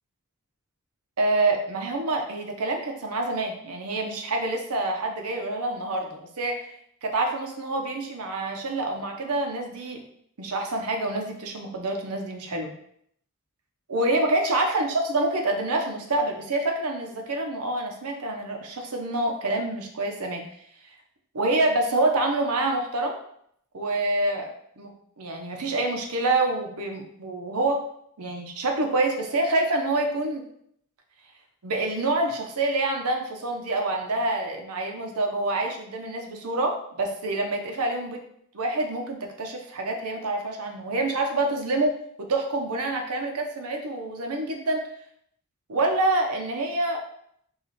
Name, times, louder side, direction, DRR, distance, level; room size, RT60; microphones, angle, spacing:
voice 1, 1.2-6.7 7.0-10.0 10.4-12.7 13.9-20.4 21.3-23.2 23.7-27.8 28.2-30.4 31.6-38.2 38.5-44.8 45.7-47.0, right 2 dB, 90° right, 2 dB, 0.8 m, -27 dB
4.8 x 2.4 x 4.1 m, 0.69 s
head